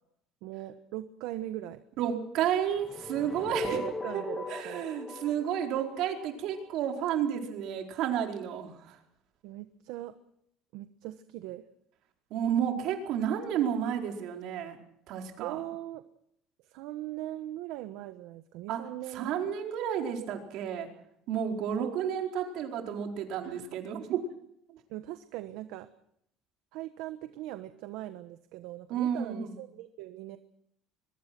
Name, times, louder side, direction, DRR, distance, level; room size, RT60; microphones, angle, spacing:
voice 1, 0.4-1.8 3.6-4.9 9.4-10.2 10.7-11.6 15.4-16.0 16.6-19.3 21.8-22.0 23.4-23.8 24.9-25.9 26.7-30.4, right 14 dB, 80° right, 9 dB, 1.2 m, -40 dB
voice 2, 2.0-3.8 4.1-4.2 4.5-9.0 12.3-14.8 15.1-15.6 18.7-18.9 19.1-20.9 21.3-24.2 24.7-24.8 28.9-29.6, right 9 dB, 65° right, 2 dB, 4.6 m, -31 dB
sound 1, 2.7-6.7, left 3 dB, 15° left, 2.6 m, -39 dB
23.5 x 22.0 x 6.1 m, 0.73 s
cardioid pair, 145°, 0 cm